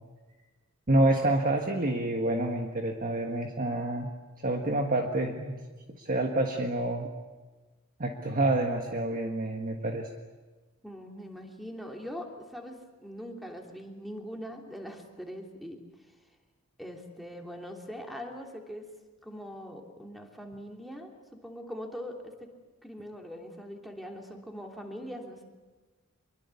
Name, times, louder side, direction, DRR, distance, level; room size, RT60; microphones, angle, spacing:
voice 1, 0.9-4.1 4.4-5.6 6.0-7.1 8.0-10.1, right 2 dB, 40° right, 3 dB, 1.6 m, -28 dB
voice 2, 10.8-15.8 16.8-18.9 19.2-22.5 22.8-25.4, equal, ahead, 2 dB, 3.1 m, -42 dB
25.5 x 23.0 x 8.4 m, 1.3 s
head